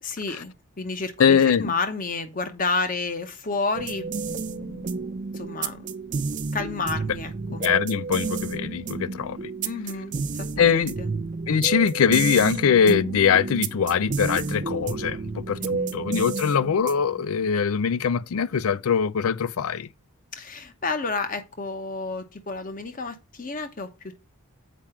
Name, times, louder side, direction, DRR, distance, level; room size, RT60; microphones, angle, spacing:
voice 1, 0.0-4.8 5.3-6.0 6.5-7.6 9.6-11.1 15.6-15.9 20.3-24.2, left 3 dB, 35° left, 1.0 m, -31 dB
voice 2, 1.2-1.7 7.6-9.5 10.6-10.9 11.5-19.9, left 7 dB, 75° left, 0.4 m, -22 dB
sound 1, 3.8-17.2, right 4 dB, 35° right, 0.5 m, -31 dB
7.4 x 4.9 x 4.4 m
head